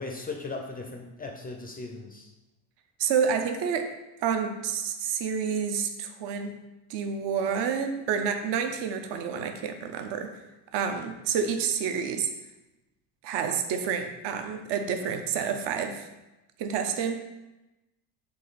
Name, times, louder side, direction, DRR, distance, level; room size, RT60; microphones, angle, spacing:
voice 1, 0.0-2.3, left 3 dB, 20° left, 2 dB, 0.4 m, -37 dB
voice 2, 3.0-4.0 4.2-6.6 6.9-10.4 10.7-12.3 13.2-16.1 16.6-17.2, right 7 dB, 60° right, 6 dB, 0.6 m, -29 dB
4.1 x 2.7 x 3.9 m, 1.0 s
supercardioid pair, 100°, 47 cm